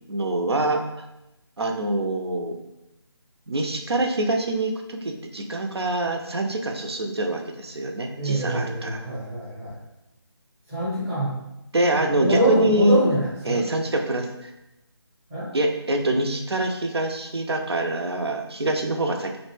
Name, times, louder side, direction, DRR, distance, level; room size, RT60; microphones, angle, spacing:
voice 1, 0.1-0.8 1.6-2.6 3.5-9.0 11.7-13.0 13.5-14.5 15.5-19.4, right 1 dB, 70° right, 3 dB, 0.5 m, -25 dB
voice 2, 8.2-9.7 10.7-11.4 12.0-13.6 15.3-15.5, right 1 dB, 5° right, -11 dB, 0.6 m, -25 dB
2.5 x 2.1 x 3.0 m, 0.91 s
figure-of-eight pair, 160°, 14 cm